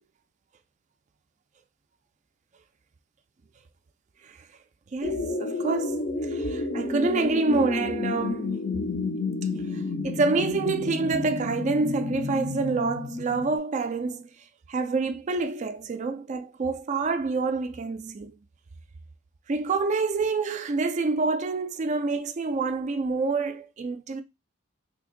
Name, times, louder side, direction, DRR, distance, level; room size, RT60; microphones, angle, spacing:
voice 1, 4.9-8.6 9.7-14.3 14.7-18.3 19.5-24.2, right 3 dB, 35° right, 0.3 m, -27 dB
sound 1, 5.0-13.6, left 3 dB, 40° left, 0.5 m, -30 dB
2.8 x 2.6 x 3.7 m
head